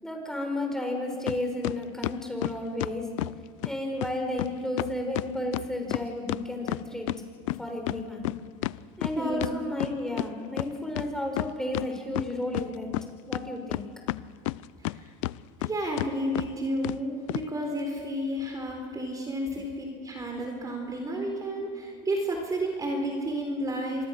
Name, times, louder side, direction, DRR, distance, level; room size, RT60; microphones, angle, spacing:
voice 1, 0.0-3.1 3.6-7.1 7.6-8.3 9.0-12.9 13.3-13.9, left 1 dB, 5° left, 2 dB, 5.2 m, -32 dB
sound 1, 1.3-1.4 1.6-3.4 3.6-3.7 4.0-4.1 4.4-4.5 4.8-7.2 7.5-10.3 10.6-10.7 11.0-11.9 12.2-13.0 13.3-15.0 15.2-15.7 16.0-16.1 16.4-16.5 16.8-17.0 17.3-17.4, left 20 dB, 85° left, 0.5 m, -30 dB
voice 2, 9.2-9.7 14.8-15.1 15.6-24.1, right 1 dB, 20° right, 3 dB, 4.1 m, -31 dB
26.5 x 21.0 x 6.6 m, 2.4 s
supercardioid pair, 110°, 16 cm